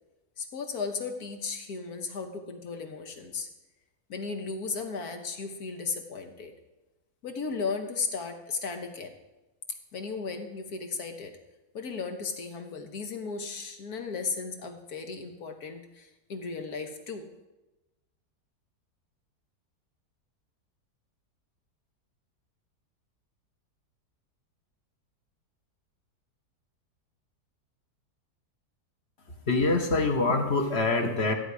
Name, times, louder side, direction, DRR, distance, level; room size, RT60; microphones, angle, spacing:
voice 1, 0.4-3.5 4.1-6.5 7.2-9.1 9.9-11.4 11.7-17.3, left 4 dB, 70° left, 5 dB, 1.8 m, -35 dB
voice 2, 29.5-31.3, left 3 dB, 45° left, 4 dB, 1.4 m, -25 dB
14.5 x 9.4 x 4.9 m, 1.0 s
omnidirectional pair, 1.7 m